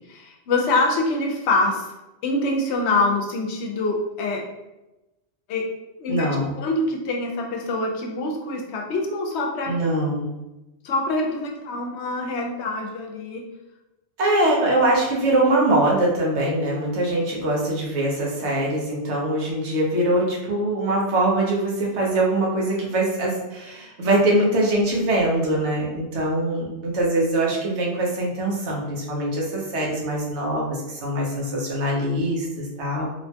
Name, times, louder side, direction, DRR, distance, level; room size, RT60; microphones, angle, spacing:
voice 1, 0.0-1.9 2.2-4.5 5.5-5.7 6.0-6.3 6.6-9.8 10.8-13.4, left 2 dB, 80° left, 1 dB, 0.8 m, -25 dB
voice 2, 6.1-6.5 9.7-10.3 14.2-33.1, right 1 dB, 90° right, -3 dB, 1.1 m, -23 dB
3.0 x 2.1 x 2.7 m, 1.0 s
omnidirectional pair, 1.1 m